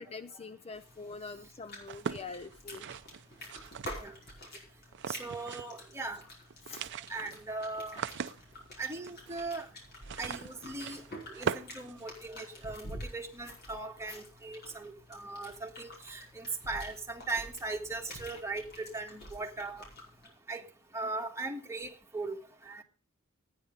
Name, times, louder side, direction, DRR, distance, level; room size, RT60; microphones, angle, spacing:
voice 1, 0.0-2.9 6.7-6.9, left 4 dB, 30° left, 12 dB, 0.5 m, -44 dB
sound 1, 0.7-20.3, left 1 dB, 50° left, 5.4 m, -49 dB
sound 2, 1.8-4.3 4.9-5.9 6.1-6.2 6.5-12.7, right 6 dB, 60° right, 0.5 m, -40 dB
voice 2, 5.1-6.2 7.1-8.0 8.8-9.7 10.2-19.8 20.5-20.6 20.9-22.8, right 3 dB, 15° right, 2 dB, 1.5 m, -39 dB
13.5 x 10.0 x 5.1 m, 0.38 s
head